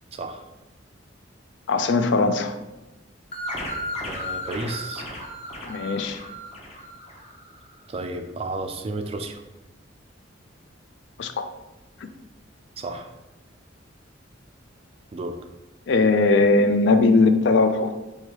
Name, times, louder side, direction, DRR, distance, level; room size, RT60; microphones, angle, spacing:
voice 1, 0.1-0.4 4.0-5.1 7.9-9.4 12.8-13.1 15.1-15.4, right 2 dB, 30° right, 6 dB, 0.3 m, -32 dB
voice 2, 1.7-2.5 5.6-6.2 11.2-11.5 15.9-18.0, left 3 dB, 65° left, 9 dB, 0.4 m, -19 dB
sound 1, 3.3-7.6, left 1 dB, 35° left, 0.8 m, -34 dB
4.7 x 2.3 x 4.5 m, 1.0 s
head